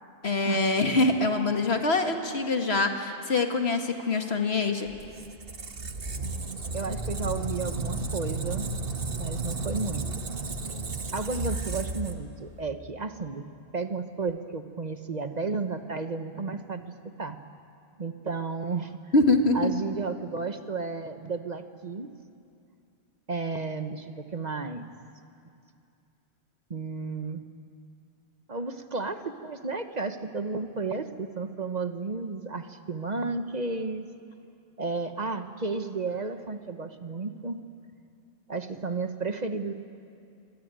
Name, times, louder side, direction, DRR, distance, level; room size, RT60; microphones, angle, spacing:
voice 1, 0.2-4.9 19.1-19.7, left 2 dB, 70° left, 4 dB, 2.2 m, -24 dB
Squeak, 4.9-12.6, right 3 dB, 60° right, 1.6 m, -33 dB
voice 2, 6.7-8.7 9.2-10.3 11.1-13.4 13.7-16.9 17.2-17.4 18.0-19.0 19.5-22.1 23.3-24.9 26.7-27.4 28.5-34.1 34.8-37.6 38.5-39.7, right 4 dB, 40° right, 8 dB, 1.1 m, -33 dB
26.5 x 23.0 x 9.1 m, 2.5 s
omnidirectional pair, 1.1 m